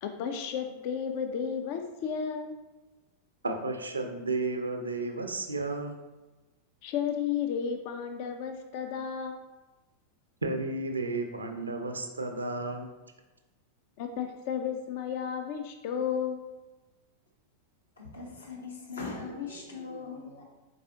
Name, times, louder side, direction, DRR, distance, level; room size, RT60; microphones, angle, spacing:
voice 1, 0.0-2.6 6.8-9.4 14.0-16.4, left 7 dB, 45° left, 6 dB, 0.4 m, -33 dB
voice 2, 3.4-6.0 10.4-12.9, right 3 dB, 75° right, 5 dB, 0.5 m, -32 dB
voice 3, 18.0-20.4, left 4 dB, 75° left, -3 dB, 1.1 m, -40 dB
4.6 x 3.6 x 2.7 m, 1.1 s
figure-of-eight pair, 90°, 0 cm